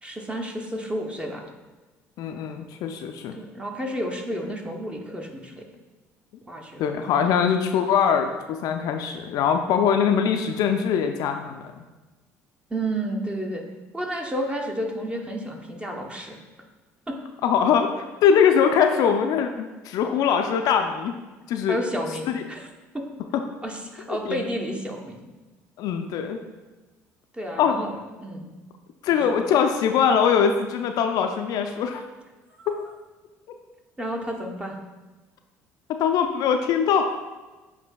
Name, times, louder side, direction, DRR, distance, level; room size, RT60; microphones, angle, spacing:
voice 1, 0.0-1.4 3.3-5.6 6.5-7.1 12.7-13.6 13.9-16.4 17.1-17.2 21.7-22.7 22.9-23.0 23.6-25.3 27.3-27.9 28.2-28.5 29.1-29.3 32.6-32.8 34.0-34.8, right 1 dB, 15° right, 1 dB, 0.8 m, -31 dB
voice 2, 2.2-3.4 6.8-11.6 17.4-21.2 21.5-21.8 22.3-22.4 24.1-24.4 25.8-26.4 27.6-27.8 29.0-32.0 32.7-32.8 36.0-37.2, left 7 dB, 60° left, 5 dB, 0.3 m, -22 dB
7.7 x 2.7 x 2.2 m, 1.2 s
hypercardioid pair, 60°, 7 cm